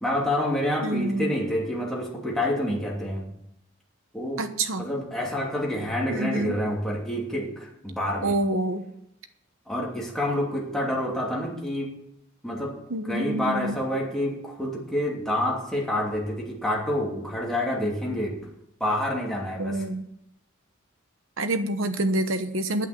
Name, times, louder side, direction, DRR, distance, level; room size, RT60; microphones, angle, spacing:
voice 1, 0.0-3.3 4.1-4.5 4.8-8.4 9.7-11.9 12.4-12.8 13.1-18.4 18.8-19.8, left 1 dB, ahead, -4 dB, 3.0 m, -28 dB
voice 2, 0.8-1.3 4.4-4.9 6.1-6.5 8.2-8.8 12.9-13.8 19.6-20.1 21.4-22.9, right 1 dB, 70° right, 9 dB, 1.1 m, -27 dB
9.7 x 8.5 x 8.0 m, 0.78 s
head